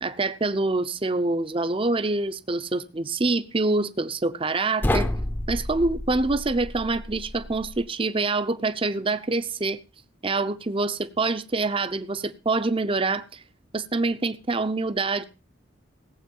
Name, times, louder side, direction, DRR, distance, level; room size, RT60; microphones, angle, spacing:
voice 1, 0.0-5.1 5.5-9.8 10.2-13.4 13.7-15.3, right 3 dB, 25° right, 12 dB, 0.7 m, -26 dB
sound 1, 4.8-7.9, left 1 dB, 10° left, 0.7 m, -30 dB
17.5 x 7.6 x 5.4 m, 0.33 s
head